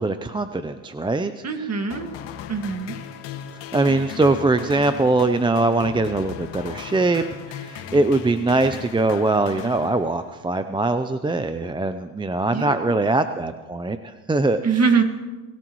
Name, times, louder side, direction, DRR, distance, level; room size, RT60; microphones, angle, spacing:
voice 1, 0.0-1.3 1.6-1.7 3.7-7.2 7.6-14.6, right 2 dB, 10° right, 9 dB, 0.5 m, -22 dB
voice 2, 1.4-2.1 2.5-3.0 12.5-13.0 14.6-15.0, right 5 dB, 30° right, 6 dB, 2.0 m, -22 dB
sound 1, 1.9-10.5, left 8 dB, 65° left, 1.9 m, -37 dB
26.5 x 17.0 x 3.1 m, 1.2 s
supercardioid pair, 95°, 47 cm